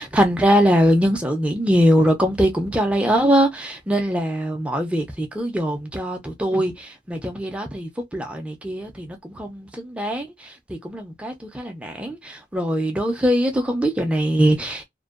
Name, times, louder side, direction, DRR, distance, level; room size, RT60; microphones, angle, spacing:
voice 1, 0.0-10.3 10.8-14.8, equal, 5° right, 0.4 m, -22 dB
2.5 x 2.2 x 2.3 m
head